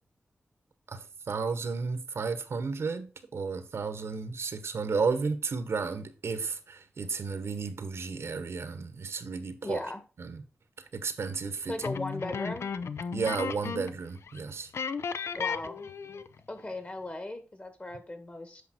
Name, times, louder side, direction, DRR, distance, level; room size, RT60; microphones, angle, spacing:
voice 1, 0.9-9.8 10.2-10.4 10.9-11.8 13.1-14.7, right 4 dB, 85° right, 1.1 m, -33 dB
voice 2, 9.6-10.0 11.7-12.7 15.4-15.9 16.5-18.6, left 2 dB, 35° left, 1.8 m, -37 dB
sound 1, 11.8-14.0 14.3-14.4 14.7-16.4, left 6 dB, 80° left, 0.5 m, -35 dB
8.5 x 5.3 x 4.4 m
wide cardioid pair, 65°, 4 cm